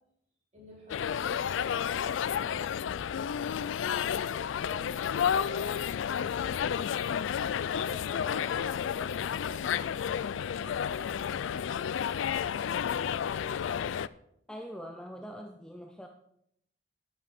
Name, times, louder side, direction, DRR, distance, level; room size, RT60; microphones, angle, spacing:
voice 1, 0.5-2.6 7.4-11.1, left 1 dB, 35° right, -5 dB, 4.8 m, -51 dB
sound 1, 0.9-14.1, left 8 dB, 85° left, 0.3 m, -31 dB
voice 2, 14.5-16.1, equal, 5° left, 3 dB, 0.6 m, -43 dB
11.5 x 9.3 x 4.2 m, 0.74 s
head